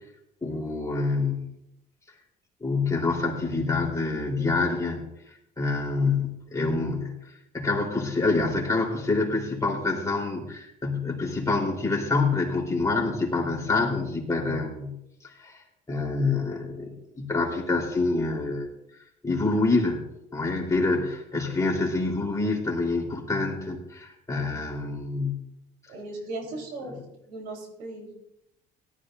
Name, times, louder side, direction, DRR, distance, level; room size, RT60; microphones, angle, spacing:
voice 1, 0.4-1.5 2.6-5.0 5.6-14.9 15.2-15.6 15.9-18.7 19.2-20.0 20.3-25.3 26.9-27.0, left 3 dB, 20° left, -1 dB, 3.6 m, -26 dB
voice 2, 25.9-27.0 27.3-28.1, right 2 dB, 90° right, 1 dB, 3.8 m, -37 dB
17.5 x 13.0 x 2.6 m, 0.83 s
cardioid pair, 110°, 17 cm